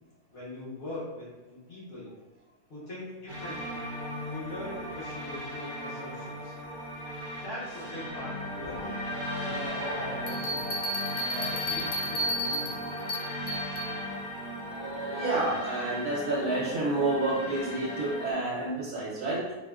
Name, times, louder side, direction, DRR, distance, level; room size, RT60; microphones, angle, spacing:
voice 1, 0.3-2.1 2.7-3.9 4.3-6.6 7.3-9.1 9.4-10.7 11.2-13.0, left 1 dB, 45° left, -7 dB, 1.2 m, -42 dB
sound 1, 3.3-18.3, left 1 dB, 40° right, 0.8 m, -37 dB
voice 2, 9.0-10.3 11.1-11.2 14.6-19.5, right 2 dB, 75° right, -8 dB, 1.2 m, -30 dB
sound 2, 10.3-13.9, equal, 60° left, 0.8 m, -33 dB
4.6 x 2.2 x 2.3 m, 1.1 s
omnidirectional pair, 1.7 m